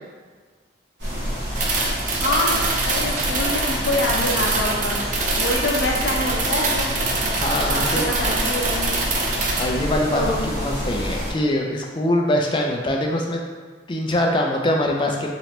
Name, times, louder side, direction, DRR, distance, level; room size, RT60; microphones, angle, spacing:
sound 1, 1.0-11.3, equal, 70° right, 1.1 m, -28 dB
sound 2, 1.6-9.6, right 3 dB, 45° right, 0.4 m, -25 dB
voice 1, 2.2-5.0 5.4-6.9 7.7-9.0 10.1-10.5, left 1 dB, 70° left, -2 dB, 0.7 m, -25 dB
voice 2, 7.4-8.1 9.3-13.4 13.9-15.3, left 1 dB, 25° left, 1 dB, 0.4 m, -23 dB
3.2 x 3.0 x 2.9 m, 1.5 s
head